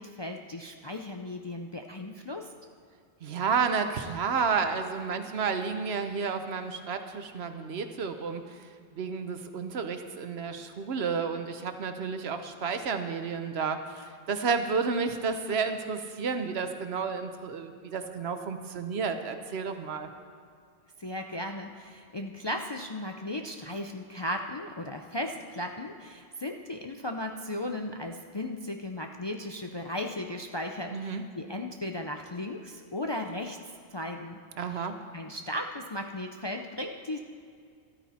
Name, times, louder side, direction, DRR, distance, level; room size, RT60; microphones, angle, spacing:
voice 1, 0.0-2.5 21.0-33.6 33.9-34.4 34.7-34.9 35.1-37.2, left 1 dB, 35° left, 3 dB, 0.4 m, -36 dB
voice 2, 3.2-8.7 8.9-20.1 30.9-31.2 34.6-35.0, right 5 dB, 70° right, 8 dB, 1.1 m, -31 dB
13.5 x 13.0 x 4.2 m, 2.2 s
omnidirectional pair, 1.1 m